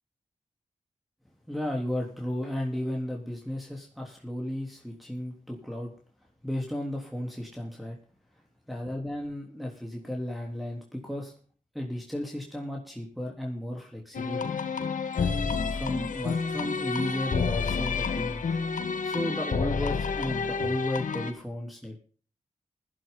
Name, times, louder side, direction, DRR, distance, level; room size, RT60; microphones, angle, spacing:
voice 1, 1.5-5.9 6.4-8.0 8.7-11.3 11.7-14.4 15.2-18.4 19.0-22.0, left 1 dB, ahead, -1 dB, 3.5 m, -34 dB
sound 1, 14.1-21.3, left 5 dB, 80° left, 1.6 m, -29 dB
16.0 x 12.0 x 3.9 m, 0.42 s
cardioid pair, 45°, 13 cm